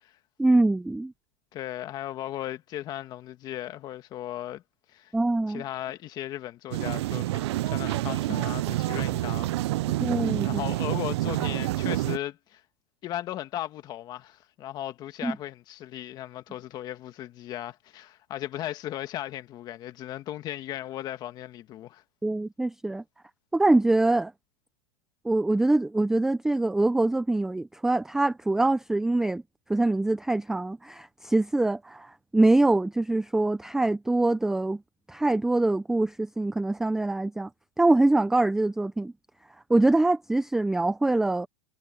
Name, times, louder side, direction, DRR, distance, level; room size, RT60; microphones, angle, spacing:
voice 1, 0.4-1.1 5.1-5.6 8.3-8.4 10.0-10.6 15.2-15.4 22.2-23.0 23.5-24.3 25.2-29.4 29.7-34.8 35.1-37.5 37.8-39.1 39.7-41.5, right 2 dB, 5° right, 0.5 m, -24 dB
voice 2, 1.5-4.6 4.9-5.1 5.5-9.6 10.0-10.1 10.4-12.6 13.0-22.0, left 13 dB, 25° left, 1.7 m, -36 dB
sound 1, 6.7-12.2, right 17 dB, 65° right, 0.4 m, -28 dB
supercardioid pair, 160°, 15 cm